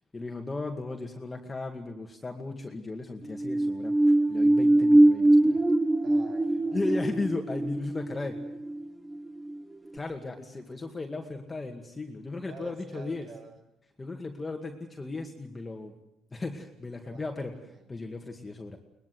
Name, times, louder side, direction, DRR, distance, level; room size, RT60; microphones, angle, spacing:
voice 1, 0.1-5.6 6.7-8.4 9.9-13.3 14.0-16.0 16.3-17.5 17.9-18.8, left 3 dB, 15° left, 3 dB, 2.2 m, -36 dB
sound 1, 3.2-9.6 10.0-10.1, right 1 dB, 10° right, 0.7 m, -23 dB
voice 2, 6.0-7.0 12.4-13.5 17.0-17.8, right 5 dB, 55° right, 4 dB, 6.4 m, -49 dB
22.5 x 21.0 x 7.9 m, 0.89 s
cardioid pair, 130°, 0 cm